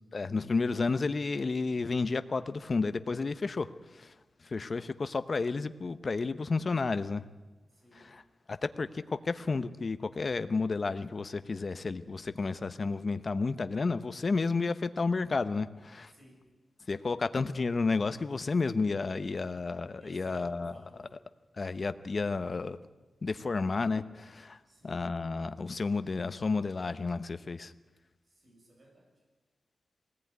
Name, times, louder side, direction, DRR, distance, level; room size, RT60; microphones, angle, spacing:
voice 1, 0.1-4.1 4.4-7.2 8.0-8.2 8.5-16.1 16.9-20.7 21.6-22.8 23.2-24.6 24.8-27.7, left 4 dB, 40° left, 11 dB, 0.9 m, -31 dB
voice 2, 7.7-8.1 16.1-16.5 19.2-19.6 19.9-21.1 24.6-25.1 28.2-29.1, equal, 40° right, 0 dB, 7.4 m, -58 dB
21.5 x 18.5 x 9.6 m, 1.2 s
wide cardioid pair, 135°, 0 cm